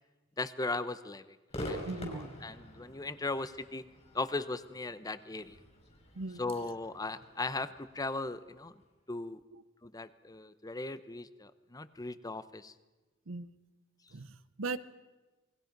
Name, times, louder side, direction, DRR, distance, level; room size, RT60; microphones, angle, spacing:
voice 1, 0.4-3.8 4.1-5.6 6.4-8.7 9.1-9.4 9.8-12.7, left 2 dB, 20° left, 13 dB, 0.8 m, -38 dB
Crowd / Fireworks, 1.5-8.8, equal, 35° left, 5.3 m, -46 dB
voice 2, 1.9-2.3 6.2-6.4 9.5-9.6 13.3-13.5 14.1-14.8, right 3 dB, 70° right, 13 dB, 0.9 m, -39 dB
28.0 x 21.0 x 5.3 m, 1.2 s
head